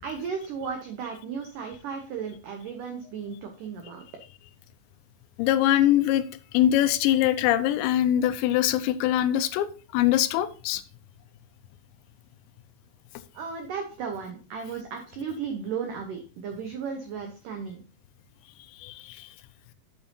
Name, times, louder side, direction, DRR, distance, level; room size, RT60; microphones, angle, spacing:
voice 1, 0.0-4.0 13.3-17.8, right 6 dB, 90° right, 4 dB, 1.8 m, -35 dB
voice 2, 5.4-6.3 6.5-9.7 9.9-10.8 18.8-19.3, left 12 dB, 85° left, 12 dB, 2.8 m, -23 dB
8.8 x 8.4 x 2.8 m, 0.36 s
omnidirectional pair, 5.3 m